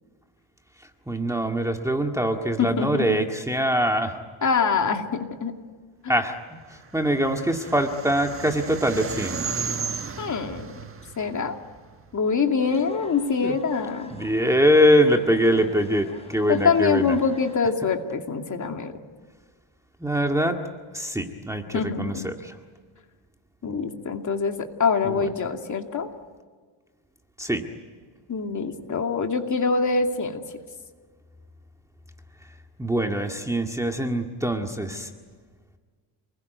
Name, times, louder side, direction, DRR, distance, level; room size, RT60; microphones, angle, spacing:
voice 1, 1.1-4.2 6.1-6.6 6.9-9.5 13.4-13.6 14.1-17.2 20.0-20.6 20.9-22.5 25.0-25.3 27.4-27.7 32.8-35.1, equal, 5° right, 3 dB, 1.9 m, -23 dB
voice 2, 2.6-3.2 4.4-5.5 6.0-6.1 10.2-10.7 11.2-11.6 12.1-14.1 16.5-18.9 21.7-22.3 23.6-26.1 28.3-30.4, left 5 dB, 35° left, 4 dB, 2.6 m, -24 dB
sound 1, 6.8-12.2, right 5 dB, 25° right, 1.4 m, -34 dB
sound 2, 12.6-17.6, left 1 dB, 10° left, 7.0 m, -46 dB
29.0 x 21.5 x 9.3 m, 1.5 s
cardioid pair, 135°, 50 cm